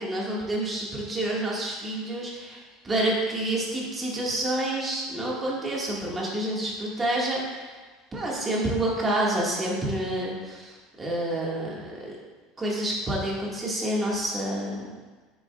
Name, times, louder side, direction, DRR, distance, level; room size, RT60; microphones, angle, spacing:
voice 1, 0.0-7.7 8.1-12.2 12.6-14.9, right 1 dB, 15° right, -4 dB, 1.9 m, -28 dB
9.1 x 7.1 x 2.4 m, 1.3 s
supercardioid pair, 145°, 0 cm